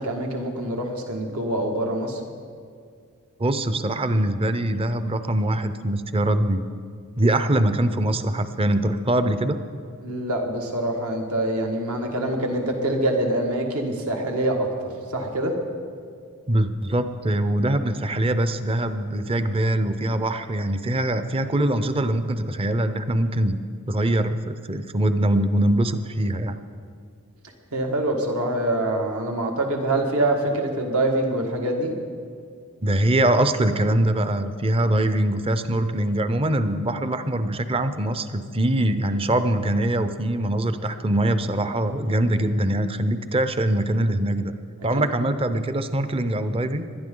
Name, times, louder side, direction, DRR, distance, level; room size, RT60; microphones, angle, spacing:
voice 1, 0.0-2.2 10.0-15.5 27.7-31.9, right 1 dB, 75° right, 2 dB, 1.8 m, -25 dB
voice 2, 3.4-6.6 7.2-9.6 16.5-23.6 23.9-26.6 32.8-44.5 44.8-46.9, right 1 dB, 25° right, 10 dB, 0.6 m, -23 dB
20.0 x 12.0 x 3.8 m, 2.2 s
head